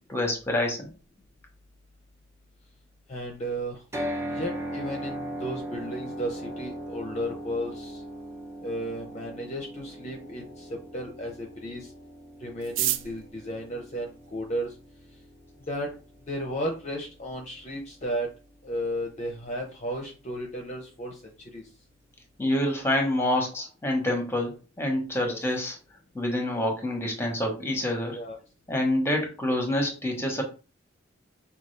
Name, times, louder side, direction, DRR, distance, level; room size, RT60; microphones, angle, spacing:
voice 1, 0.1-0.9 22.4-25.8 26.1-28.2 28.7-30.4, left 1 dB, 15° left, 2 dB, 1.0 m, -27 dB
voice 2, 3.1-3.8 4.3-8.0 8.6-11.9 12.4-14.7 15.7-15.9 16.3-18.3 18.6-21.2 21.5-21.6 25.2-25.4 28.1-28.4, equal, 35° left, 2 dB, 0.6 m, -34 dB
sound 1, 3.9-18.0, right 1 dB, 15° right, 0.6 m, -39 dB
sound 2, 12.6-14.8 15.6-15.7 16.0-16.1 16.3-16.8 17.1-17.2 17.4-17.8 18.2-18.3 18.7-19.0, right 12 dB, 80° right, 0.4 m, -32 dB
5.1 x 2.3 x 3.2 m, 0.33 s
head